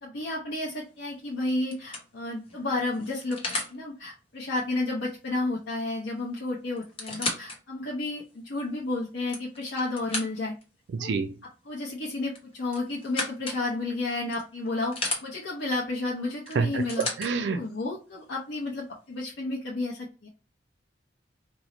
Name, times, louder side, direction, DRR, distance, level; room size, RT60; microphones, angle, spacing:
voice 1, 0.0-3.4 3.7-10.5 11.0-11.1 11.6-14.9 15.2-17.1 17.5-20.3, left 2 dB, 85° left, -4 dB, 0.7 m, -31 dB
sound 1, 0.8-1.1 1.7-3.8 5.8-5.9 6.2-6.3 6.8-7.6 8.2-8.3 9.0-10.6 12.3-13.6 14.3-15.2 16.5-17.3 18.2-18.3, left 2 dB, 30° left, 0.9 m, -34 dB
voice 2, 10.9-11.3 16.6-17.6, right 5 dB, 70° right, 8 dB, 0.3 m, -27 dB
3.0 x 2.0 x 3.8 m, 0.34 s
head